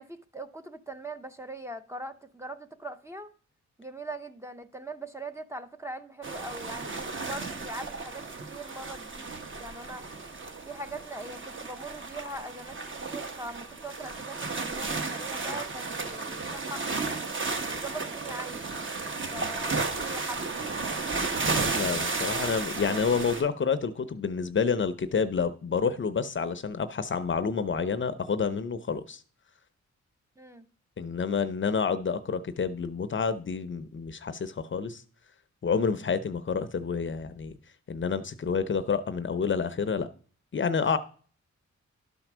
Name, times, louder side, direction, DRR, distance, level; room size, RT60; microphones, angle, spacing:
voice 1, 0.0-3.3 3.8-9.3 9.6-10.0 10.7-12.8 13.0-17.1 17.7-20.4 30.4-30.6, right 2 dB, 10° right, 0.6 m, -41 dB
sound 1, 6.2-23.4, right 3 dB, 40° right, 1.2 m, -33 dB
voice 2, 21.7-29.2 31.0-35.0 35.6-37.6 37.9-40.1 40.5-41.0, left 5 dB, 40° left, 0.6 m, -29 dB
11.5 x 4.4 x 6.0 m
wide cardioid pair, 140°, 30 cm